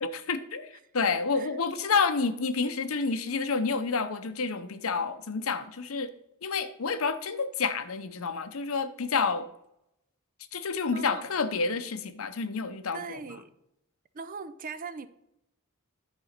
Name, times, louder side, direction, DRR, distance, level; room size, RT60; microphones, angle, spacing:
voice 1, 0.0-6.1 6.4-9.5 10.5-13.2, left 4 dB, 70° left, 0.7 m, -29 dB
voice 2, 10.9-11.3 12.9-13.5 14.1-15.1, right 5 dB, 40° right, 0.5 m, -40 dB
10.5 x 4.1 x 6.5 m
head